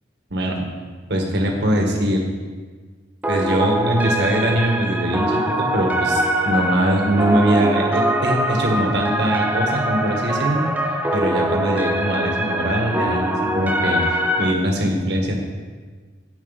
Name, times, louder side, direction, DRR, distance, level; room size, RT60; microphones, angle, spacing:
voice 1, 0.3-0.7 1.1-2.3 3.3-10.7 11.1-15.4, right 1 dB, 65° right, 1 dB, 1.7 m, -22 dB
sound 1, 3.2-14.5, right 1 dB, 10° right, 0.6 m, -23 dB
9.4 x 8.4 x 4.2 m, 1.4 s
head